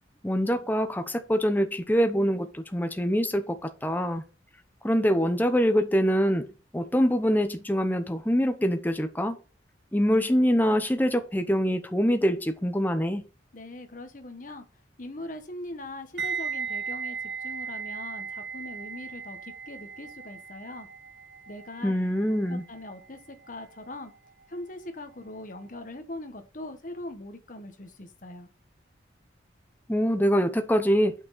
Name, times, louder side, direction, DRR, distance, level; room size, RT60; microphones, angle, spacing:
voice 1, 0.2-3.6 3.8-4.2 4.8-6.5 6.7-9.4 9.9-13.2 21.8-22.6 29.9-31.1, equal, 10° left, 0.7 m, -24 dB
voice 2, 13.5-14.6 15.0-17.2 17.4-20.9 21.5-21.9 22.5-24.1 24.5-28.5, left 1 dB, 45° left, 1.2 m, -41 dB
sound 1, 16.2-25.1 25.4-25.7, right 6 dB, 60° right, 1.0 m, -37 dB
7.7 x 6.1 x 4.0 m
head